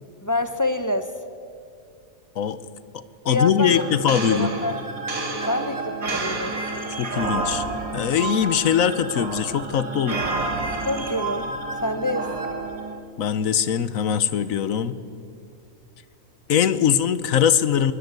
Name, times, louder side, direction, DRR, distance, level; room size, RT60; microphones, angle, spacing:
voice 1, 0.2-1.1 3.3-3.8 4.3-4.7 5.5-6.5 10.9-11.5 11.8-12.3, left 2 dB, 15° left, 9 dB, 0.7 m, -26 dB
voice 2, 3.2-4.5 7.0-7.7 7.9-10.2 13.2-15.0 16.5-17.9, left 8 dB, 75° left, 14 dB, 1.3 m, -21 dB
sound 1, 3.7-12.9, right 3 dB, 75° right, 2.6 m, -29 dB
22.5 x 19.5 x 8.1 m, 2.4 s
omnidirectional pair, 1.4 m